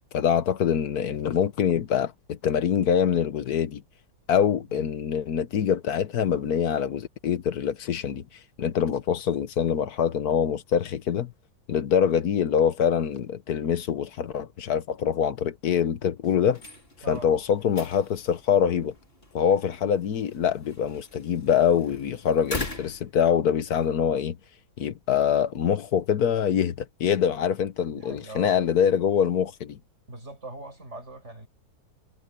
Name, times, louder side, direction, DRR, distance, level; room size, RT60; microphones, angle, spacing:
voice 1, 0.1-3.8 4.3-8.2 8.6-11.3 11.7-16.6 17.1-18.9 19.3-24.4 24.8-29.8, left 8 dB, 80° left, 1.5 m, -24 dB
sound 1, 16.4-23.9, left 2 dB, 35° left, 4.7 m, -41 dB
voice 2, 27.8-28.6 30.1-31.5, right 2 dB, 50° right, 6.7 m, -41 dB
omnidirectional pair, 1.6 m